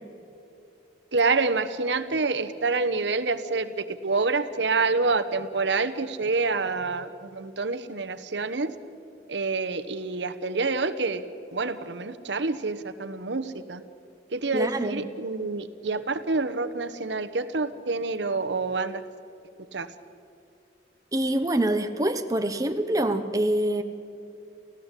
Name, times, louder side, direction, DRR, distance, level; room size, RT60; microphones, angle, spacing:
voice 1, 1.1-8.7 9.3-11.2 11.5-13.8 14.3-19.0 19.7-19.9, right 3 dB, 85° right, 11 dB, 1.1 m, -27 dB
voice 2, 14.5-15.1 21.1-23.8, right 1 dB, 20° right, 6 dB, 1.0 m, -25 dB
29.5 x 15.5 x 8.3 m, 2.6 s
head